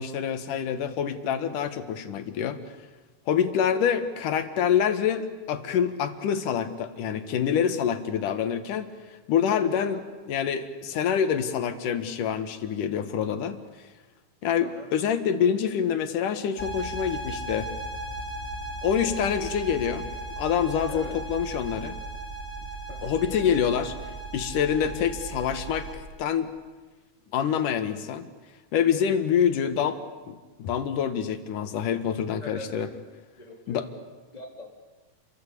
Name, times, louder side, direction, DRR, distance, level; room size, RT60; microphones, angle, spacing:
voice 1, 0.0-2.6 3.3-13.6 14.4-17.7 18.8-20.1 20.4-22.0 23.0-24.0 24.3-26.5 27.3-28.3 28.7-30.0 30.3-32.9 33.7-33.9, left 8 dB, 85° left, 10 dB, 3.1 m, -26 dB
sound 1, 16.6-25.9, right 2 dB, 20° right, 4.4 m, -36 dB
voice 2, 20.9-21.2 22.9-23.1 32.4-32.9 33.4-33.9 34.3-34.7, left 2 dB, 10° left, 1 dB, 3.4 m, -42 dB
30.0 x 23.5 x 8.4 m, 1.3 s
omnidirectional pair, 3.6 m